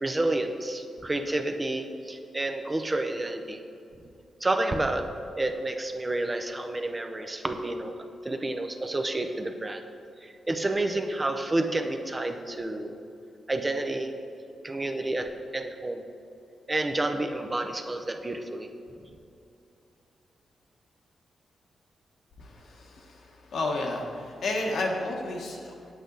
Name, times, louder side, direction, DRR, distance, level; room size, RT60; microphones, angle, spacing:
voice 1, 0.0-3.6 4.0-4.1 4.4-5.1 5.4-7.9 8.2-9.8 10.2-13.0 13.5-14.1 14.6-16.0 16.7-19.1, right 2 dB, 25° right, 6 dB, 0.7 m, -30 dB
voice 2, 22.4-25.9, left 2 dB, 75° left, 0 dB, 1.3 m, -32 dB
8.3 x 7.9 x 4.0 m, 2.6 s
cardioid pair, 70°, 0 cm